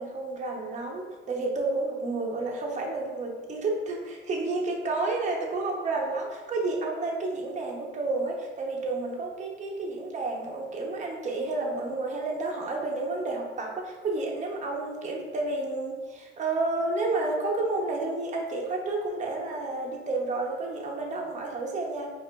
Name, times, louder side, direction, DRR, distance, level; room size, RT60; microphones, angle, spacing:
voice 1, 0.0-22.1, right 2 dB, 40° right, 0 dB, 0.7 m, -30 dB
4.9 x 2.4 x 2.2 m, 1.3 s
cardioid pair, 90°, 20 cm